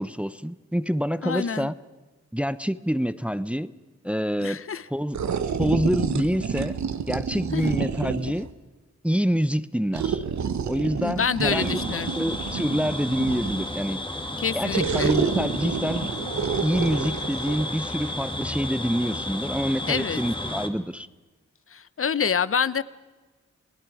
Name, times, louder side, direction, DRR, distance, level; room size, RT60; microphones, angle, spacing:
voice 1, 0.0-1.7 2.3-3.7 4.0-4.6 4.9-5.2 5.6-6.7 7.1-8.5 9.0-10.2 10.7-11.8 12.2-14.0 14.5-16.2 16.6-21.1, equal, 5° right, 15 dB, 0.7 m, -26 dB
voice 2, 1.2-1.7 4.4-4.9 7.5-7.7 11.0-12.1 14.4-15.1 19.9-20.2 21.7-22.8, left 6 dB, 50° left, 18 dB, 0.8 m, -27 dB
monster snarls, 5.1-8.5 9.9-13.7 14.7-17.6, right 6 dB, 70° right, 1.1 m, -29 dB
sound 1, 11.5-20.7, left 1 dB, 15° left, 2.1 m, -32 dB
28.5 x 19.5 x 4.9 m, 1.2 s
cardioid pair, 55°, 29 cm